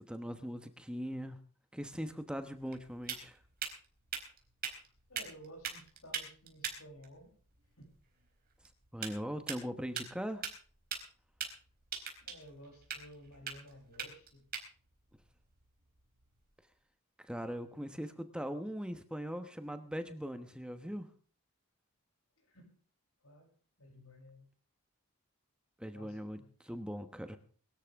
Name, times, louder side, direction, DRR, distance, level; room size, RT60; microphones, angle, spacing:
voice 1, 0.0-1.4 1.7-3.4 8.9-10.4 17.2-21.1 25.8-27.4, equal, 5° right, 8 dB, 1.1 m, -40 dB
sound 1, 1.9-16.5, right 7 dB, 45° right, 4.2 m, -45 dB
voice 2, 5.1-7.3 7.8-7.9 12.3-14.4 22.5-22.7 23.2-23.5 23.8-24.5 25.9-26.5, equal, 80° left, 2 dB, 7.4 m, -54 dB
23.0 x 13.0 x 3.6 m, 0.42 s
head